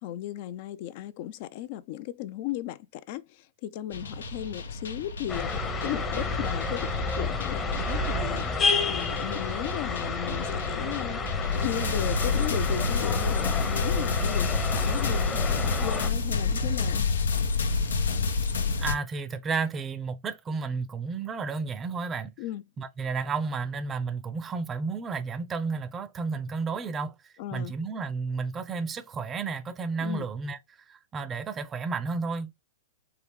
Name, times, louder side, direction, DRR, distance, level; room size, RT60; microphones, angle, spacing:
voice 1, 0.0-5.5 5.8-6.9 7.2-8.5 8.8-11.2 11.6-17.0 22.4-22.6 27.4-27.7 30.0-30.2, left 12 dB, 50° left, 0.5 m, -36 dB
sound 1, 3.9-19.0, left 4 dB, 90° left, 0.8 m, -29 dB
sound 2, 5.3-16.1, left 3 dB, 20° left, 0.8 m, -30 dB
voice 2, 18.8-22.3 22.8-30.6 30.9-32.5, right 4 dB, 20° right, 0.6 m, -32 dB
4.5 x 2.4 x 3.5 m
hypercardioid pair, 130°, 0 cm